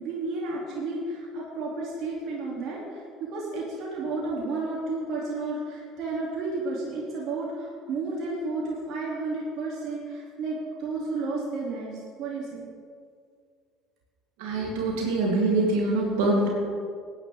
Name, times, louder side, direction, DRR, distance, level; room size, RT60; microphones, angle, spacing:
voice 1, 0.0-12.6, right 3 dB, 60° right, -4 dB, 2.8 m, -32 dB
voice 2, 14.4-16.5, right 2 dB, 75° right, -3 dB, 3.2 m, -24 dB
18.5 x 10.0 x 3.6 m, 2.2 s
hypercardioid pair, 70°, 0 cm